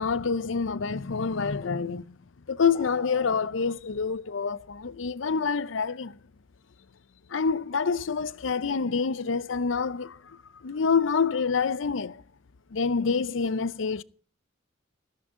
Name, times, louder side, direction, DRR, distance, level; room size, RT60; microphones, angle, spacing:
voice 1, 0.0-2.1 2.5-6.1 7.3-10.4 10.6-12.2 12.7-14.0, left 5 dB, 75° left, 0.6 m, -27 dB
sound 1, 2.7-3.3, left 3 dB, 40° left, 3.8 m, -41 dB
15.0 x 14.0 x 3.7 m
head